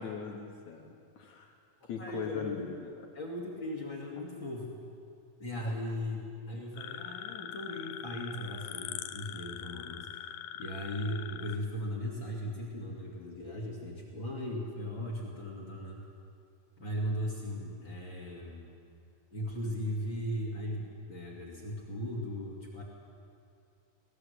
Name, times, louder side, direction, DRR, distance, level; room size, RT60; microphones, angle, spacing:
voice 1, 0.0-1.5 1.8-2.9 5.6-5.8, left 6 dB, 65° left, 2 dB, 2.5 m, -41 dB
voice 2, 2.0-2.8 3.1-4.8 5.4-16.0 16.8-18.7 19.3-22.8, equal, 40° left, -3 dB, 3.0 m, -38 dB
sound 1, 6.8-11.6, left 11 dB, 90° left, 2.6 m, -42 dB
23.0 x 18.5 x 8.2 m, 2.4 s
omnidirectional pair, 3.9 m